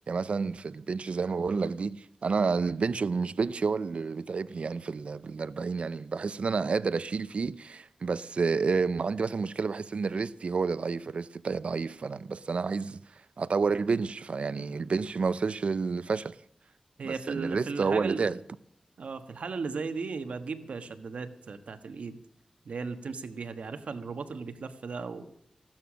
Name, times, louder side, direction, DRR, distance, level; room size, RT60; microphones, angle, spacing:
voice 1, 0.1-13.0 13.4-16.3 17.0-18.4, right 4 dB, 70° right, 0.6 m, -30 dB
voice 2, 17.0-18.3 19.0-22.2 22.6-25.3, right 4 dB, 85° right, 1.3 m, -36 dB
15.0 x 12.5 x 6.3 m
wide cardioid pair, 90°, 2 cm